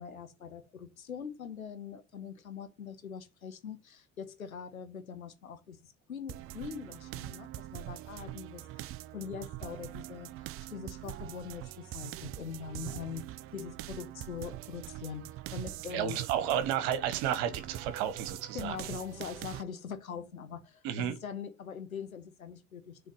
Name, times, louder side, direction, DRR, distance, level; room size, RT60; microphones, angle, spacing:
voice 1, 0.0-10.3 10.7-15.2 15.5-16.2 18.5-23.0, left 7 dB, 85° left, 1.1 m, -43 dB
sound 1, 6.3-19.6, right 15 dB, 35° right, 0.4 m, -43 dB
voice 2, 15.9-18.9 20.8-21.2, right 10 dB, 55° right, 1.3 m, -32 dB
6.9 x 3.5 x 6.2 m
figure-of-eight pair, 65°, 41 cm